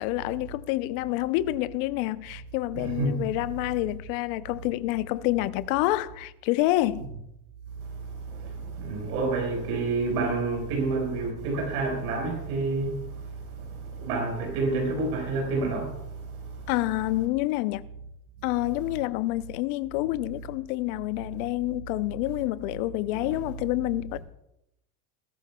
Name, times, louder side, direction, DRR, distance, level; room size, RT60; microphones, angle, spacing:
voice 1, 0.0-7.1 16.7-17.9 18.4-24.2, left 17 dB, 70° left, 0.7 m, -28 dB
voice 2, 2.7-3.2 7.8-16.7 23.1-23.2, right 3 dB, 85° right, 4.9 m, -29 dB
21.0 x 13.0 x 2.3 m
supercardioid pair, 105°, 43 cm